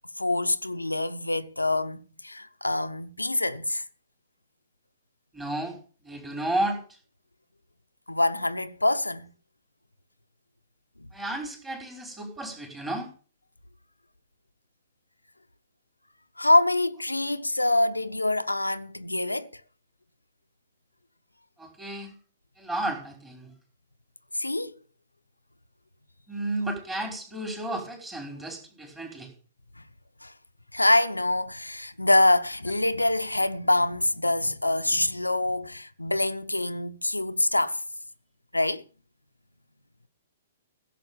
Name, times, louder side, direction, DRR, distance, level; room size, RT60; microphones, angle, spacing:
voice 1, 0.2-3.8 8.1-9.3 16.4-19.5 24.3-24.7 30.2-30.3 30.7-37.8 38.5-38.8, left 2 dB, 85° left, 0.7 m, -25 dB
voice 2, 5.3-5.8 6.0-6.8 11.1-13.1 21.6-22.1 22.6-23.5 26.3-29.3, right 1 dB, 10° right, 4.2 m, -32 dB
15.5 x 7.6 x 7.0 m
figure-of-eight pair, 115°, 0 cm